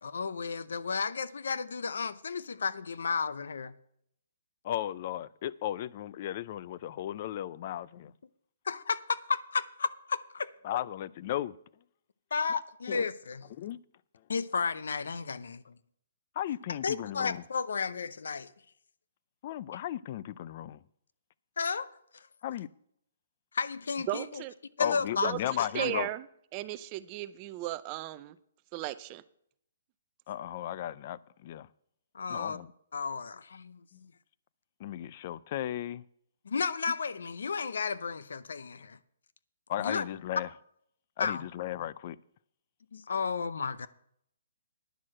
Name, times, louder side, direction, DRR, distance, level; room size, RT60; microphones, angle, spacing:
voice 1, 0.0-3.7 8.7-10.5 12.3-13.4 14.3-15.7 16.8-18.5 21.6-21.9 23.5-24.4 24.8-25.3 25.8-26.0 32.1-32.6 32.9-33.8 36.5-39.0 39.8-40.0 41.2-41.4 42.9-43.9, left 5 dB, 80° left, 0.6 m, -33 dB
voice 2, 4.6-8.1 10.6-11.5 12.9-13.1 13.6-13.8 16.4-17.4 19.4-20.8 22.4-22.7 24.8-26.1 30.3-31.7 32.3-32.7 33.9-34.0 34.8-36.0 39.7-40.5 41.2-42.2, left 12 dB, 40° left, 0.4 m, -35 dB
voice 3, 24.1-24.5 25.2-25.4 25.7-26.3 26.5-28.4 28.7-29.2, right 16 dB, 25° right, 0.5 m, -35 dB
10.0 x 6.4 x 7.5 m
hypercardioid pair, 160°, 0 cm